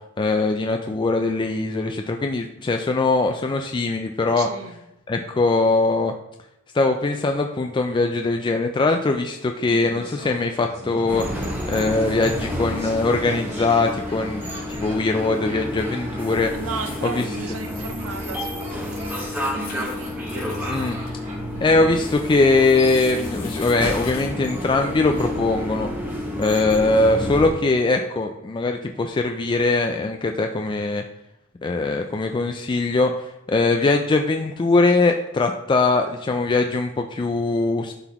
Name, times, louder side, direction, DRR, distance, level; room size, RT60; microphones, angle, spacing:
voice 1, 0.2-4.5 5.1-6.1 6.7-11.2 11.7-14.5 14.8-16.5 17.0-17.2 20.7-21.0 21.6-25.9 26.4-31.0 31.6-33.1 33.5-37.9, left 3 dB, 20° left, 5 dB, 0.3 m, -21 dB
voice 2, 4.4-4.8 16.3-20.9, right 4 dB, 70° right, 8 dB, 0.8 m, -35 dB
Laughter, 9.7-22.7 22.9-23.0, right 1 dB, 30° right, 1.7 m, -40 dB
sound 1, 11.1-27.5, left 1 dB, 10° right, 1.4 m, -30 dB
sound 2, 16.6-17.6 17.8-17.9 18.4-21.1 21.5-24.3, left 5 dB, 70° left, 2.4 m, -43 dB
11.5 x 4.0 x 2.9 m, 0.88 s
head